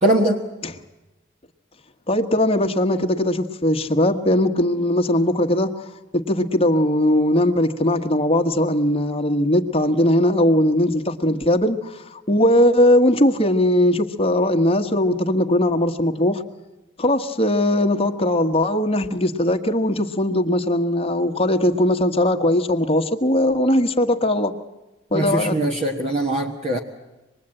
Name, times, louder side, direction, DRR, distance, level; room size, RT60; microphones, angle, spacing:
voice 1, 0.0-0.4 25.1-26.8, right 1 dB, 30° right, 1 dB, 1.4 m, -21 dB
voice 2, 2.1-5.7 6.1-16.4 17.0-24.5 25.1-25.6, left 1 dB, 30° left, 5 dB, 1.4 m, -19 dB
25.5 x 21.0 x 8.9 m, 1.1 s
head